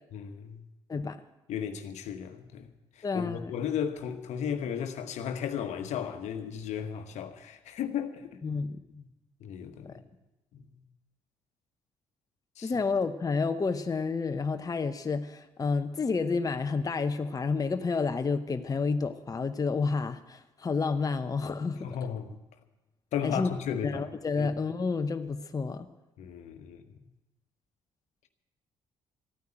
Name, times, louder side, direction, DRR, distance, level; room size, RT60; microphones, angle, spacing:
voice 1, 0.1-0.7 1.5-8.4 8.9-9.1 9.4-10.0 10.5-10.8 12.6-12.7 21.8-22.4 23.1-24.5 26.2-27.0, left 8 dB, 65° left, 1.2 m, -35 dB
voice 2, 3.0-3.5 8.4-8.8 9.8-10.0 12.6-21.9 23.2-23.5 23.8-25.9, left 4 dB, 30° left, 0.9 m, -30 dB
14.0 x 9.4 x 8.8 m
hypercardioid pair, 55°, 12 cm